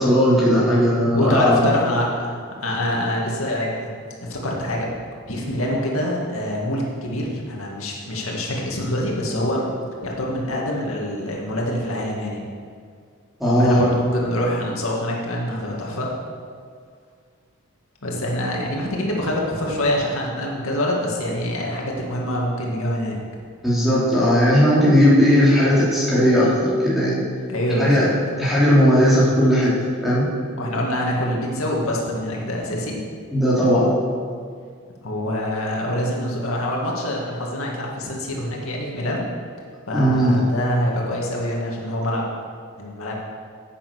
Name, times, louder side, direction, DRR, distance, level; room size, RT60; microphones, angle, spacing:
voice 1, 0.0-1.6 13.4-13.8 23.6-27.2 27.8-28.0 28.4-29.7 30.0-30.3 33.3-33.9 39.9-40.4, equal, ahead, -9 dB, 3.2 m, -17 dB
voice 2, 1.1-3.9 4.3-4.9 5.3-9.7 10.0-12.4 13.6-16.1 18.0-23.2 27.5-28.1 30.6-33.0 35.0-39.2 39.9-42.3 42.8-43.2, left 1 dB, 90° left, -2 dB, 2.2 m, -25 dB
10.5 x 8.8 x 6.3 m, 2.1 s
head